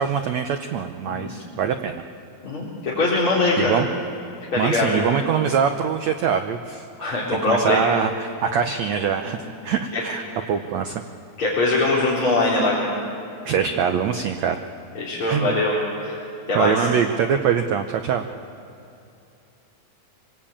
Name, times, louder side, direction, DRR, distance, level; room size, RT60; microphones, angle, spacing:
voice 1, 0.0-2.0 3.6-3.9 4.6-9.4 9.6-11.0 13.4-14.6 15.3-15.6 16.5-18.2, right 7 dB, 85° right, 7 dB, 1.5 m, -23 dB
voice 2, 2.4-3.8 4.5-5.1 7.0-7.8 9.3-9.4 9.9-10.0 11.4-12.7 14.9-16.2 16.5-16.9, left 2 dB, 35° left, -8 dB, 4.5 m, -22 dB
26.0 x 18.5 x 8.7 m, 2.6 s
omnidirectional pair, 4.3 m